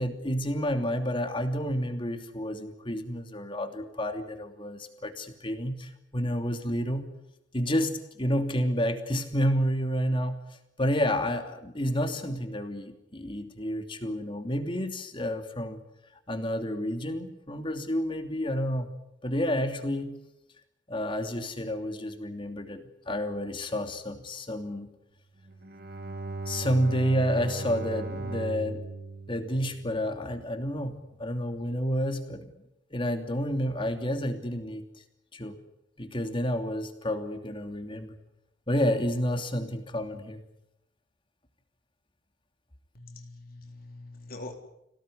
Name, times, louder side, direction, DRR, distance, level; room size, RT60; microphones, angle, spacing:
voice 1, 0.0-7.1 7.5-10.4 10.8-15.8 16.3-18.9 19.2-20.2 20.9-24.9 26.5-28.8 29.3-32.5 32.9-34.9 35.3-35.6 36.0-38.1 38.7-40.4, equal, 25° left, 6 dB, 2.8 m, -30 dB
Bowed string instrument, 25.4-30.6, right 3 dB, 55° right, 2.6 m, -38 dB
voice 2, 42.9-44.5, left 2 dB, 50° left, 3 dB, 3.7 m, -44 dB
27.0 x 17.5 x 10.0 m, 0.85 s
head